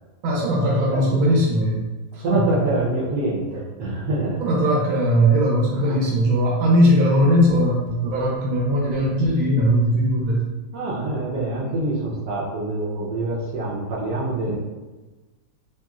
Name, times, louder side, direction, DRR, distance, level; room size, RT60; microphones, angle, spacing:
voice 1, 0.2-1.8 2.1-2.4 4.4-10.4 14.5-14.6, equal, 85° right, -3 dB, 1.4 m, -19 dB
voice 2, 2.1-4.4 5.7-6.0 10.7-14.6, right 2 dB, 65° right, -5 dB, 1.1 m, -26 dB
3.0 x 2.9 x 2.3 m, 1.2 s
omnidirectional pair, 2.1 m